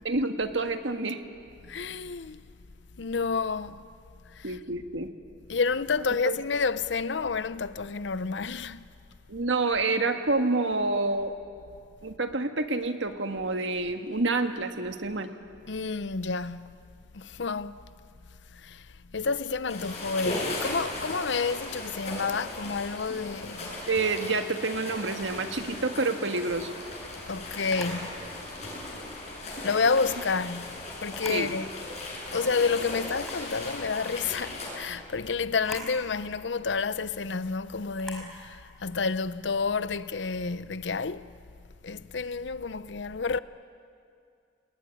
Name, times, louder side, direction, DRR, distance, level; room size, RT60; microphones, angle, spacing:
voice 1, 0.0-1.2 4.4-5.1 6.2-6.4 9.3-11.3 12.0-15.3 23.9-26.7 31.3-31.5, right 3 dB, 90° right, 1.7 m, -28 dB
voice 2, 1.6-2.4 3.0-3.8 4.3-4.6 5.5-8.9 15.7-16.9 17.1-17.8 18.5-23.9 27.2-28.3 29.6-31.7 32.3-41.3 41.8-43.4, left 4 dB, 75° left, 0.7 m, -30 dB
sound 1, 19.7-34.7, left 2 dB, 40° left, 7.5 m, -37 dB
Camera, 27.7-28.0 29.7-30.1 31.0-31.5 31.9-32.0 33.1-33.5 35.5-35.9 37.9-38.3, left 1 dB, ahead, 4.9 m, -41 dB
28.0 x 20.0 x 10.0 m
head